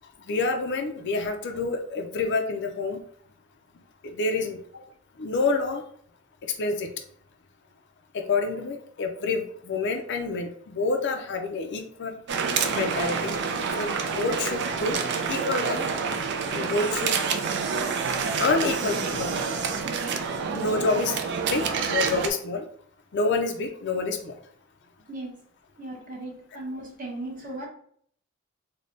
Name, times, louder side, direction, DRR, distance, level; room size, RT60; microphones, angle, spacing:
voice 1, 0.3-3.0 4.0-4.6 5.2-5.8 6.6-6.9 8.1-12.2 12.7-13.4 13.8-15.0 15.3-15.8 16.5-17.1 18.4-19.4 20.5-21.2 21.5-22.7 23.1-24.3, left 3 dB, 55° left, 4 dB, 0.5 m, -27 dB
sound 1, 12.3-22.3, right 5 dB, 55° right, 0.4 m, -28 dB
voice 2, 25.1-25.4 25.8-27.7, right 1 dB, 40° right, -2 dB, 1.0 m, -37 dB
3.3 x 2.2 x 3.9 m, 0.62 s
head